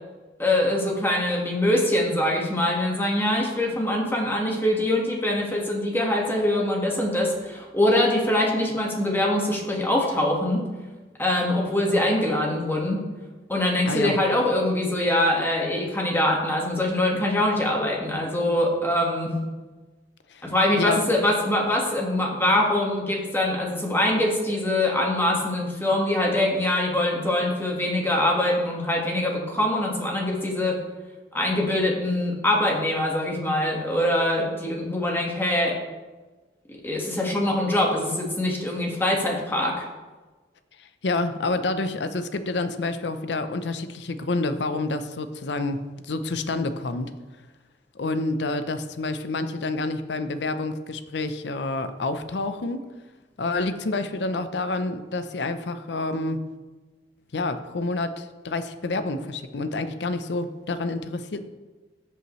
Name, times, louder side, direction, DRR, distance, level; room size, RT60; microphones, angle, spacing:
voice 1, 0.4-10.6 11.2-13.0 13.5-19.4 20.4-30.8 31.3-35.8 36.7-39.8, left 1 dB, 15° left, -1 dB, 1.5 m, -23 dB
voice 2, 40.8-47.1 47.9-52.8 53.4-56.4 57.3-61.4, left 2 dB, 70° left, 10 dB, 0.6 m, -28 dB
13.5 x 5.6 x 3.1 m, 1.3 s
head